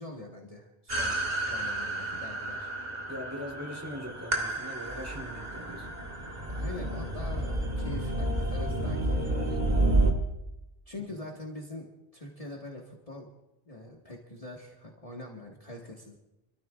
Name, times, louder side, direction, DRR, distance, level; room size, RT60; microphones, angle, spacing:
voice 1, 0.0-2.7 6.5-9.6 10.9-13.3 13.6-16.2, left 2 dB, 35° left, -2 dB, 1.6 m, -43 dB
sound 1, 0.9-10.1, right 1 dB, 40° right, 2.0 m, -30 dB
voice 2, 3.1-5.9 9.3-9.6, equal, 15° right, -2 dB, 3.4 m, -41 dB
27.5 x 13.5 x 2.5 m, 0.91 s
omnidirectional pair, 1.1 m